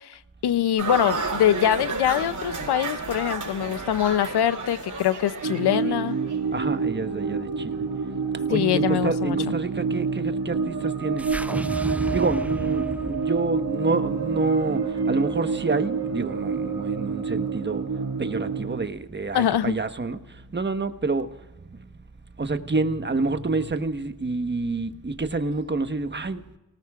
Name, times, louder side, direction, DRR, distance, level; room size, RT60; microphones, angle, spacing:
voice 1, 0.0-6.2 8.5-9.4 19.3-19.7, left 11 dB, 80° left, 0.7 m, -23 dB
sound 1, 0.8-6.4, right 4 dB, 50° right, 4.7 m, -32 dB
sound 2, 5.4-18.9, right 5 dB, 85° right, 2.1 m, -27 dB
voice 2, 6.5-7.9 8.3-11.4 12.1-17.9 18.2-21.9 22.4-26.4, right 3 dB, 30° right, 1.3 m, -28 dB
sound 3, 11.2-15.5, right 1 dB, 5° right, 0.4 m, -34 dB
28.5 x 18.5 x 2.5 m
cardioid pair, 40°, 38 cm